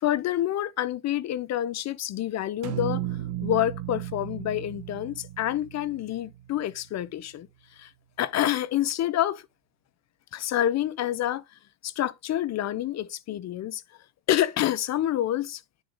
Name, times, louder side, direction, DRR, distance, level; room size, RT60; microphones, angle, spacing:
voice 1, 0.0-3.1 3.4-7.5 7.7-7.9 8.2-9.4 10.3-11.4 11.8-13.8 14.3-15.6, left 12 dB, 35° left, 0.5 m, -27 dB
sound 1, 2.6-6.8, right 14 dB, 55° right, 1.0 m, -35 dB
10.5 x 4.0 x 3.3 m
supercardioid pair, 100°, 47 cm